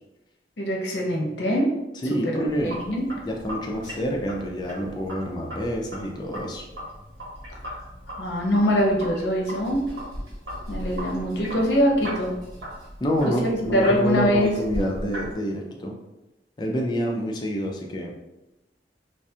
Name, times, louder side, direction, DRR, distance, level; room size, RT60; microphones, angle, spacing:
voice 1, 0.6-1.7 2.2-3.1 7.7-7.8 8.1-9.8 10.7-12.3 13.4-14.5, equal, 80° left, 0 dB, 0.6 m, -23 dB
voice 2, 2.0-2.8 3.3-6.6 13.0-15.9 16.6-18.1, equal, 25° left, 0 dB, 0.3 m, -27 dB
Sink (filling or washing), 2.5-15.3, equal, 90° right, 1.3 m, -38 dB
2.4 x 2.2 x 2.7 m, 0.97 s
head